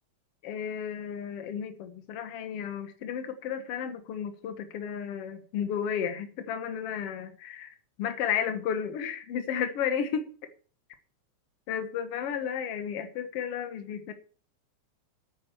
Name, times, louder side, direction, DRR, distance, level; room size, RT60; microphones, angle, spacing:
voice 1, 0.4-10.3 11.7-14.1, left 8 dB, 55° left, 2.1 m, -33 dB
9.6 x 8.9 x 6.9 m
omnidirectional pair, 3.6 m